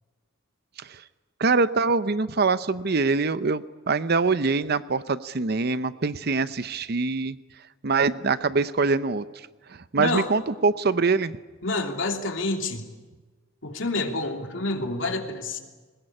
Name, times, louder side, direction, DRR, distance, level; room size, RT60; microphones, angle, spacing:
voice 1, 1.4-7.4 7.8-9.2 9.7-11.3, right 4 dB, 50° right, 14 dB, 0.7 m, -24 dB
voice 2, 10.0-10.3 11.6-12.9 13.6-15.6, left 2 dB, 70° left, 3 dB, 3.1 m, -28 dB
21.0 x 21.0 x 10.0 m, 1.3 s
head